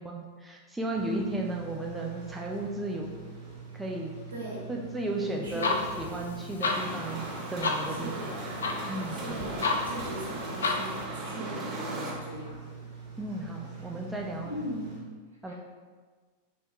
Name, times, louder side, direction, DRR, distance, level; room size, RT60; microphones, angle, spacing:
voice 1, 0.0-3.2 3.7-4.1 4.7-8.3 8.9-9.5 13.2-14.6 15.4-15.5, right 1 dB, 10° right, -1 dB, 0.3 m, -35 dB
sound 1, 0.9-15.0, right 6 dB, 50° right, 1.4 m, -45 dB
voice 2, 0.9-1.4 4.3-4.6 5.1-5.8 7.9-8.4 9.1-12.7 14.4-14.9 15.5-15.6, right 1 dB, 75° right, -4 dB, 0.9 m, -38 dB
sound 2, 5.5-11.0, left 3 dB, 70° left, 0.3 m, -33 dB
sound 3, 6.7-12.1, right 2 dB, 35° right, 0.7 m, -38 dB
3.4 x 2.7 x 2.9 m, 1.5 s
figure-of-eight pair, 90°, 0 cm